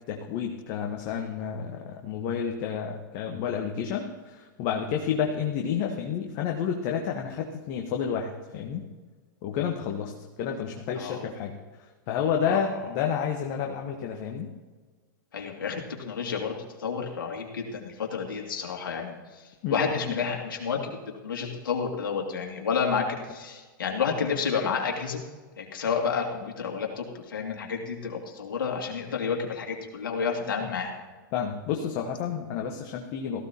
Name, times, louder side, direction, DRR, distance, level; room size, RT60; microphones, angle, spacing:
voice 1, 0.1-8.8 9.4-11.5 12.1-14.5 19.6-20.1 30.5-30.8 31.3-33.4, left 7 dB, 45° left, 2 dB, 1.3 m, -30 dB
voice 2, 15.3-16.5 16.8-19.2 19.7-21.0 21.2-25.2 25.6-30.9, left 6 dB, 75° left, 1 dB, 2.5 m, -30 dB
17.5 x 15.0 x 2.9 m, 1.3 s
hypercardioid pair, 105°, 11 cm